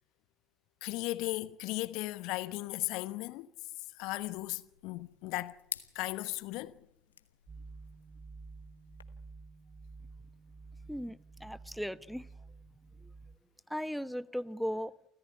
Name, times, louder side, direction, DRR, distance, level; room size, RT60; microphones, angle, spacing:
voice 1, 0.8-3.5 4.0-5.6 5.9-6.7, left 19 dB, 65° left, 1.0 m, -36 dB
sound 1, 4.0-9.0, left 8 dB, 85° left, 1.2 m, -50 dB
sound 2, 7.5-13.4, right 4 dB, 45° right, 2.8 m, -51 dB
voice 2, 10.9-12.3 13.0-13.1 13.7-14.9, equal, ahead, 1.0 m, -37 dB
28.5 x 14.5 x 9.7 m
hypercardioid pair, 60°, 0 cm